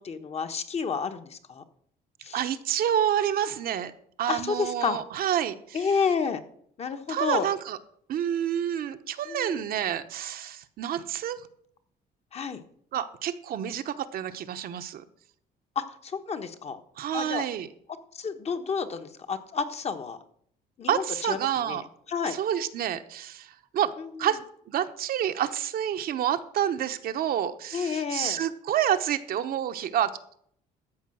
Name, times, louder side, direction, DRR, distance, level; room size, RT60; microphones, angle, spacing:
voice 1, 0.0-1.6 2.2-2.4 4.3-5.0 5.7-6.4 6.8-7.5 9.3-9.6 12.3-12.6 15.7-16.8 17.1-17.4 18.1-20.2 20.8-22.4 24.0-24.3 27.7-28.4, left 5 dB, 40° left, 7 dB, 1.2 m, -30 dB
voice 2, 2.3-3.9 4.2-5.8 7.1-7.8 8.1-11.5 12.9-15.0 17.0-17.7 20.9-21.9 22.3-23.9 24.2-24.4 24.7-30.4, right 10 dB, 60° right, 9 dB, 1.0 m, -28 dB
13.5 x 5.1 x 7.7 m, 0.65 s
cardioid pair, 110°, 17 cm